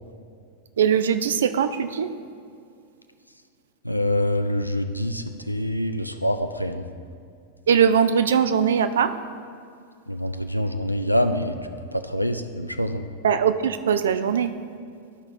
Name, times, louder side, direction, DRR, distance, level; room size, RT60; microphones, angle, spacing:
voice 1, 0.8-2.1 7.7-9.1 13.2-14.5, right 7 dB, 65° right, 11 dB, 0.4 m, -21 dB
voice 2, 3.9-6.9 10.1-11.5 11.9-13.0, left 1 dB, 90° left, 8 dB, 0.4 m, -25 dB
12.5 x 4.8 x 3.2 m, 2.3 s
figure-of-eight pair, 90°, 0 cm